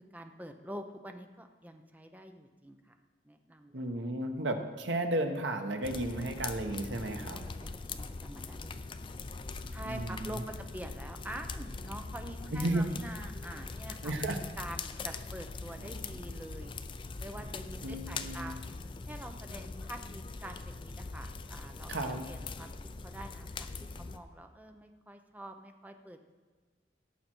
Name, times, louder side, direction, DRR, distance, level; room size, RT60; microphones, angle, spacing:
voice 1, 0.1-3.0 3.2-3.8 7.1-7.3 7.9-8.8 9.7-14.1 14.6-16.7 17.2-18.6 19.1-21.9 22.2-22.7 23.0-23.7 24.0-26.3, right 1 dB, 10° right, 5 dB, 0.7 m, -46 dB
voice 2, 3.7-7.5 9.8-10.4 12.5-12.9 14.0-14.4 15.8-15.9 17.8-18.6 21.9-22.2, right 1 dB, 90° right, 5 dB, 1.2 m, -33 dB
sound 1, 5.8-24.2, left 4 dB, 30° left, 0.4 m, -42 dB
17.0 x 7.5 x 4.5 m, 1.4 s
head